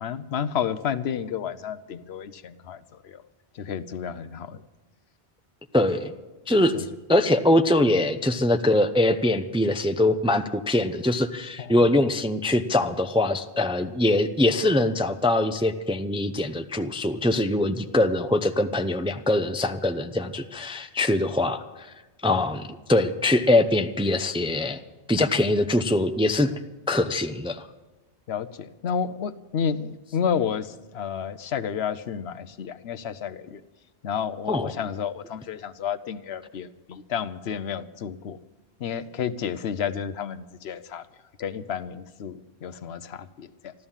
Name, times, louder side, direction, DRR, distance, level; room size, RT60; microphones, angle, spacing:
voice 1, 0.0-3.2 3.6-4.6 6.7-6.9 11.6-11.7 28.3-33.6 34.0-38.4 38.8-41.0 41.4-43.7, left 7 dB, 70° left, 14 dB, 0.9 m, -31 dB
voice 2, 5.7-6.1 6.5-21.9 22.2-24.8 25.1-26.5 26.9-27.7 34.5-34.7, left 1 dB, 5° right, 8 dB, 0.4 m, -23 dB
14.0 x 12.5 x 7.2 m, 1.1 s
omnidirectional pair, 1.1 m